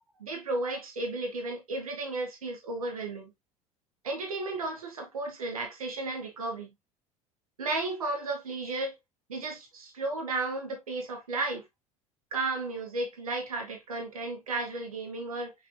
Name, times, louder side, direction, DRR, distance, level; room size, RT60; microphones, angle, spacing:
voice 1, 0.2-3.3 4.0-6.7 7.6-8.9 9.3-11.7 12.3-15.5, right 2 dB, 85° right, 1.2 m, -33 dB
5.9 x 3.2 x 2.5 m
figure-of-eight pair, 65°, 18 cm